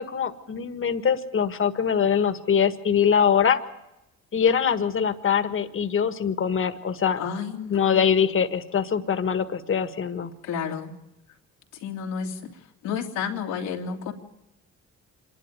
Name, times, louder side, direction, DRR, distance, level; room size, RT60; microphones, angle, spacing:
voice 1, 0.0-3.6 4.3-7.2 7.7-10.3, left 7 dB, 45° left, 9 dB, 1.7 m, -23 dB
voice 2, 7.2-8.1 10.4-10.9 11.7-12.5 12.8-14.1, left 7 dB, 90° left, 1 dB, 2.6 m, -31 dB
26.5 x 11.5 x 9.3 m, 0.91 s
cardioid pair, 90°, 30 cm